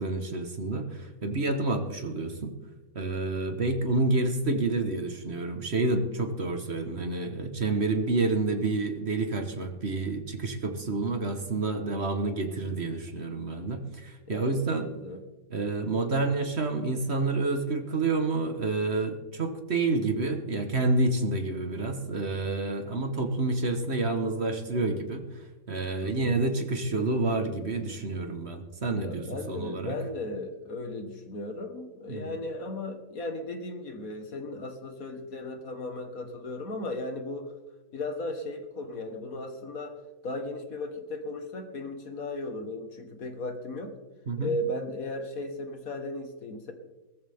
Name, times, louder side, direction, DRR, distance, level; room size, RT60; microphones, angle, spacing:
voice 1, 0.0-2.5 2.9-14.9 15.5-25.2 25.7-30.0 32.1-32.3 44.3-44.5, right 3 dB, 35° right, 6 dB, 1.4 m, -29 dB
voice 2, 14.3-15.2 26.0-26.4 29.0-37.5 37.9-40.0 40.2-43.9 44.4-46.7, left 2 dB, 45° left, 6 dB, 1.8 m, -36 dB
18.5 x 14.5 x 3.6 m, 1.1 s
omnidirectional pair, 2.2 m